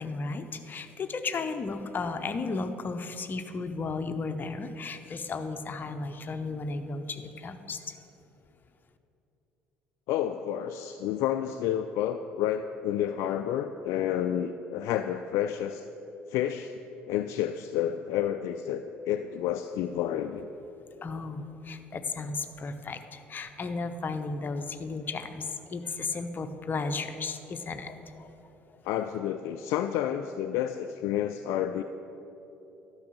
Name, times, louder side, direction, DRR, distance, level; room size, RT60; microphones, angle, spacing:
voice 1, 0.0-8.0 21.0-28.5, left 4 dB, 35° left, 8 dB, 0.7 m, -34 dB
voice 2, 10.1-15.8 16.3-16.7 17.1-20.5 28.8-31.8, left 10 dB, 55° left, 8 dB, 0.3 m, -30 dB
12.0 x 5.5 x 7.5 m, 3.0 s
figure-of-eight pair, 55°, 6 cm